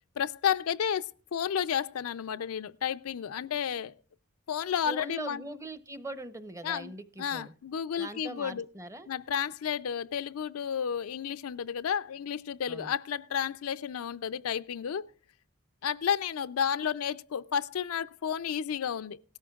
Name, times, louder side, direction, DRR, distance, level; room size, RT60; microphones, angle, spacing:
voice 1, 0.2-3.9 4.5-5.4 6.6-6.9 7.2-8.7 9.1-15.1 15.8-19.2, left 8 dB, 80° left, 0.4 m, -32 dB
voice 2, 4.9-7.5 8.0-9.1 12.7-12.9, right 2 dB, 15° right, 0.7 m, -41 dB
17.5 x 13.5 x 2.3 m
head